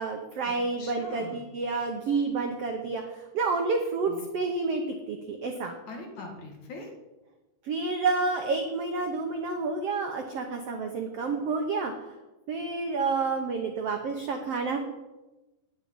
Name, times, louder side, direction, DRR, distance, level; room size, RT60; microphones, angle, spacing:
voice 1, 0.0-4.8 5.1-5.7 7.6-12.1 12.5-14.8, right 4 dB, 90° right, 4 dB, 1.3 m, -29 dB
voice 2, 0.8-1.4 4.1-4.3 5.9-6.9, left 3 dB, 55° left, 2 dB, 3.0 m, -42 dB
9.6 x 7.7 x 9.4 m, 1.1 s
omnidirectional pair, 4.4 m